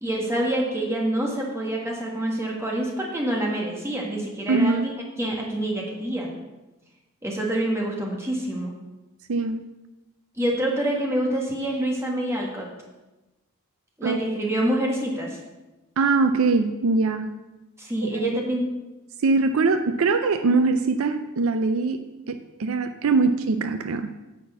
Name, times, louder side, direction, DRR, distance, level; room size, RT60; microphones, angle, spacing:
voice 1, 0.0-4.9 5.2-6.3 7.2-8.7 10.4-12.7 14.0-15.4 17.8-18.6, right 1 dB, 10° right, -1 dB, 1.5 m, -26 dB
voice 2, 4.5-4.9 9.3-9.6 14.0-14.2 16.0-17.3 18.0-18.3 19.2-24.1, right 3 dB, 65° right, 9 dB, 0.5 m, -22 dB
9.4 x 4.3 x 7.0 m, 1.1 s
head